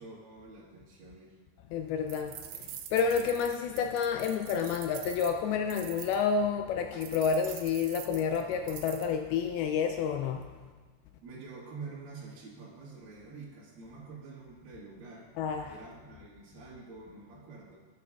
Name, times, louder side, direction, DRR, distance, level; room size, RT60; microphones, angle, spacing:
voice 1, 0.0-1.4 11.2-15.3 15.7-17.8, right 4 dB, 60° right, -7 dB, 3.1 m, -47 dB
voice 2, 1.7-10.5 15.4-15.7, left 6 dB, 85° left, 5 dB, 2.2 m, -30 dB
sound 1, 2.1-6.2 7.0-9.1, right 10 dB, 80° right, 2.6 m, -45 dB
18.5 x 8.4 x 2.3 m, 1.4 s
omnidirectional pair, 4.8 m